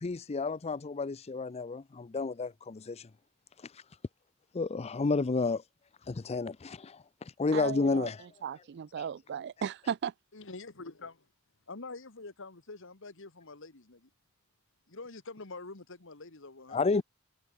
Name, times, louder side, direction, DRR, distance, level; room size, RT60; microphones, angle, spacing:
voice 1, 0.0-3.1 3.6-3.8 4.5-5.6 6.0-8.3 9.0-9.1 16.7-17.0, left 3 dB, 30° left, 0.5 m, -31 dB
voice 2, 7.5-8.1 8.4-10.1, right 8 dB, 55° right, 0.4 m, -36 dB
voice 3, 10.3-11.3 11.7-14.1 14.9-17.0, left 3 dB, 65° left, 2.0 m, -46 dB
head